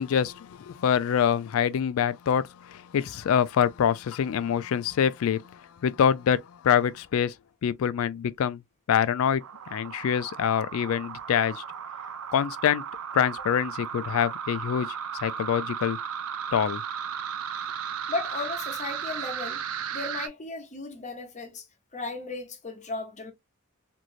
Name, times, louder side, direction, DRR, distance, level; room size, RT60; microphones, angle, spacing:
voice 1, 0.0-7.3 7.6-8.6 8.9-9.4 9.7-11.6 12.3-12.8 13.1-15.0 15.2-16.0 16.5-16.8, left 8 dB, 75° left, 0.3 m, -25 dB
sound 1, 9.4-20.3, right 8 dB, 90° right, 0.5 m, -35 dB
voice 2, 18.1-19.6 19.9-21.7 21.9-23.3, left 3 dB, 35° left, 0.7 m, -35 dB
3.1 x 2.6 x 2.4 m
head